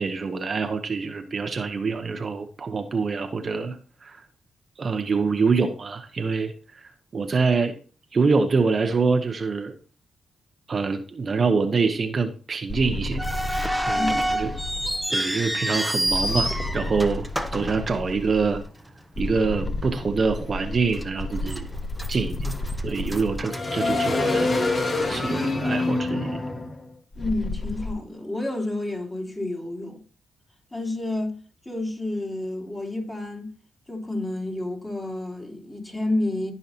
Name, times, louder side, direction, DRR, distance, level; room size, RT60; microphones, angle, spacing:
voice 1, 0.0-3.8 4.0-4.2 4.8-7.8 8.1-9.7 10.7-13.2 13.9-14.5 15.1-17.3 17.5-18.6 19.2-21.7 22.1-22.5 22.8-24.7 25.1-26.4, right 4 dB, 45° right, 0.9 m, -25 dB
sound 1, 12.7-15.0 16.1-18.6 19.2-27.9, left 2 dB, 40° left, 1.5 m, -29 dB
sound 2, 13.2-18.5 18.8-18.9 19.6-19.8 20.3-20.4 21.0-21.6 21.9-24.4, equal, ahead, 1.1 m, -28 dB
voice 2, 13.9-14.5 27.1-30.0 30.7-33.5 33.9-36.5, left 2 dB, 20° left, 3.4 m, -30 dB
15.0 x 5.6 x 2.8 m
supercardioid pair, 60°, 0 cm